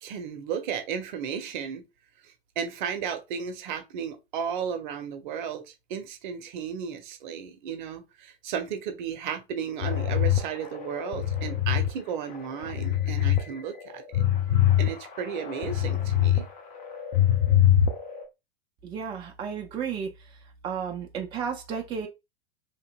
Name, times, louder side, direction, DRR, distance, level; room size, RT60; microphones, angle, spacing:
voice 1, 0.0-1.8 2.6-14.2 14.8-16.5, right 7 dB, 50° right, 0.7 m, -34 dB
sound 1, 9.8-11.9 12.3-13.4 13.8-16.4 16.8-18.2, left 11 dB, 25° left, 0.6 m, -24 dB
voice 2, 18.8-20.1 20.6-22.1, right 7 dB, 15° right, 0.4 m, -32 dB
2.8 x 2.8 x 2.2 m
figure-of-eight pair, 90°, 30 cm